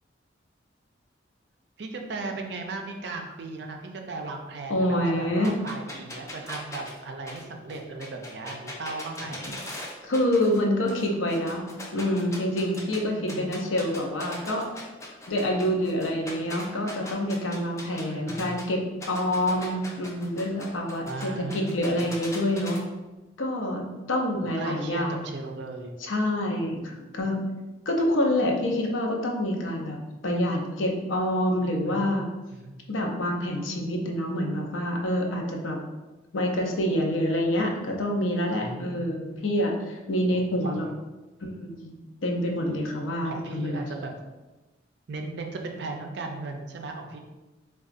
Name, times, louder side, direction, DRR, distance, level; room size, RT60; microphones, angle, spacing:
voice 1, 1.8-9.6 13.1-13.5 18.0-18.6 21.1-22.1 24.5-25.9 31.6-32.2 32.5-32.9 38.5-39.4 40.3-40.8 43.2-44.2 45.1-47.2, right 3 dB, 60° right, 3 dB, 0.4 m, -37 dB
voice 2, 4.7-5.5 10.0-11.6 11.9-14.7 15.3-22.8 23.4-25.2 26.0-27.4 27.9-32.3 32.9-35.8 36.3-40.9 41.4-41.9 42.2-43.8, left 1 dB, 90° left, 1 dB, 0.5 m, -27 dB
sound 1, 5.4-10.6 10.9-13.0 13.3-18.6 19.0-22.8, left 1 dB, 15° left, 0.4 m, -40 dB
3.8 x 2.3 x 2.4 m, 1.1 s
head